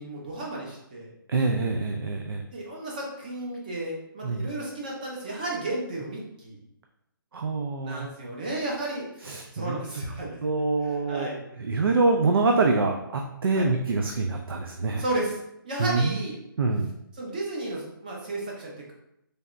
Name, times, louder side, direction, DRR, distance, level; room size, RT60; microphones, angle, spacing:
voice 1, 0.0-1.1 2.5-6.6 7.8-10.4 11.1-11.4 13.5-13.7 15.0-15.4 15.6-16.4 17.2-18.9, right 2 dB, 20° right, -3 dB, 0.7 m, -33 dB
voice 2, 1.3-2.4 4.2-4.5 7.3-8.1 9.2-9.8 10.2-11.3 11.6-15.0 15.8-16.2 16.6-16.9, right 3 dB, 85° right, 3 dB, 0.5 m, -25 dB
4.0 x 3.3 x 2.4 m, 0.81 s
hypercardioid pair, 175°, 12 cm